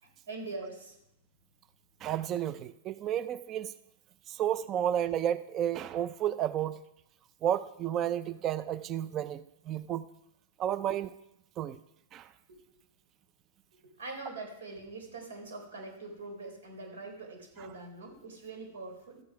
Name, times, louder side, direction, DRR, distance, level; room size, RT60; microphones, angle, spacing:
voice 1, 0.0-0.9 10.8-10.9 12.5-12.6 13.8-19.2, right 3 dB, 85° right, 3 dB, 3.8 m, -43 dB
voice 2, 2.0-3.7 4.3-6.8 7.4-10.1 10.6-11.1 11.6-11.8 12.1-12.3, right 10 dB, 35° right, 15 dB, 0.5 m, -32 dB
13.0 x 8.6 x 4.8 m, 0.80 s
hypercardioid pair, 125°, 0 cm